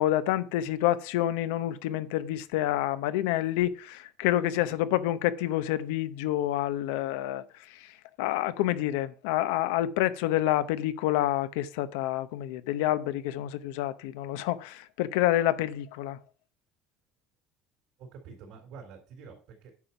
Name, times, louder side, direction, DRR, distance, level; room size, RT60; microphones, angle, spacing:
voice 1, 0.0-7.9 8.2-16.2, left 13 dB, 90° left, 0.7 m, -28 dB
voice 2, 18.0-19.9, right 5 dB, 70° right, 3.7 m, -48 dB
9.6 x 5.2 x 5.9 m
supercardioid pair, 110°, 0 cm